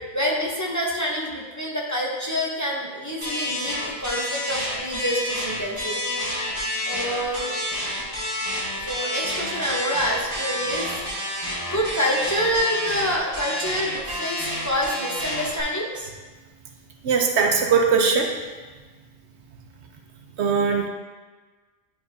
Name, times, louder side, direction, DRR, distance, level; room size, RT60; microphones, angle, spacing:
voice 1, 0.1-6.0 6.8-7.5 8.8-10.9 11.7-16.1, equal, 15° left, -4 dB, 1.0 m, -27 dB
sound 1, 3.2-15.6, left 1 dB, 25° right, 2.1 m, -29 dB
voice 2, 17.0-18.3 20.4-20.9, right 5 dB, 80° right, 2 dB, 1.1 m, -20 dB
10.5 x 4.7 x 2.8 m, 1.3 s
omnidirectional pair, 1.1 m